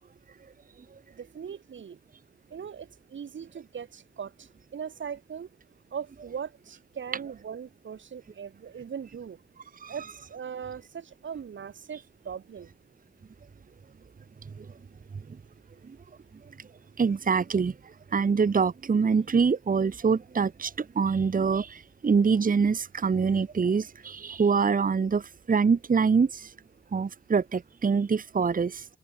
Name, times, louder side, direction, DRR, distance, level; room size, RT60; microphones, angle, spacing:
voice 1, 1.1-2.0 2.5-5.5 5.9-9.4 9.9-12.7, right 7 dB, 70° right, 1.1 m, -39 dB
voice 2, 17.0-17.7 18.1-26.5 26.9-28.8, right 5 dB, 45° right, 0.9 m, -25 dB
cardioid pair, 50°, 20 cm